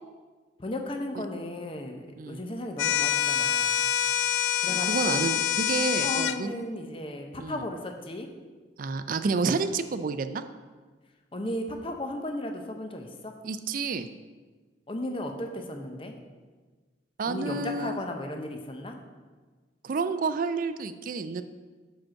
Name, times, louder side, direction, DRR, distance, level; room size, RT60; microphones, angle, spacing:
voice 1, 0.6-3.9 4.6-5.3 6.0-8.3 11.3-13.3 14.9-16.2 17.3-19.0, left 1 dB, 30° left, 4 dB, 0.7 m, -35 dB
sound 1, 2.8-6.4, left 11 dB, 90° left, 0.3 m, -26 dB
voice 2, 4.7-6.5 7.4-7.6 8.8-10.4 13.4-14.1 17.2-18.0 19.8-21.4, right 4 dB, 45° right, 11 dB, 0.4 m, -30 dB
5.8 x 5.2 x 6.3 m, 1.4 s
head